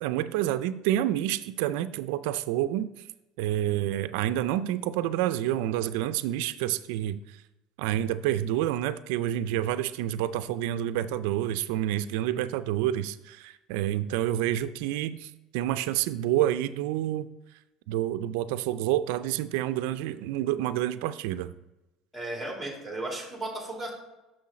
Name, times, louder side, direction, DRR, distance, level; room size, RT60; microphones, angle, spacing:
voice 1, 0.0-2.9 3.4-7.4 7.8-17.3 17.9-21.5, right 12 dB, 80° right, 12 dB, 0.3 m, -28 dB
voice 2, 22.1-23.9, right 2 dB, 5° left, -2 dB, 2.6 m, -35 dB
6.2 x 6.2 x 4.2 m, 0.99 s
supercardioid pair, 105°, 0 cm